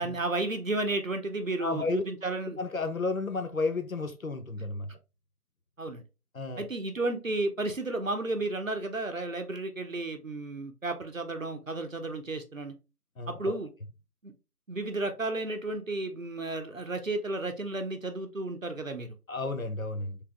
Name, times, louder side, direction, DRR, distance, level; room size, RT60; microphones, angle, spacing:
voice 1, 0.0-2.6 5.8-6.0 6.6-12.7 13.3-13.7 14.2-14.3 14.7-19.2, right 2 dB, 55° right, 0.7 m, -33 dB
voice 2, 1.6-2.0 2.4-4.9 6.3-6.7 13.2-13.6 19.3-20.2, left 3 dB, 60° left, 0.6 m, -32 dB
3.4 x 2.8 x 3.3 m
figure-of-eight pair, 175°, 47 cm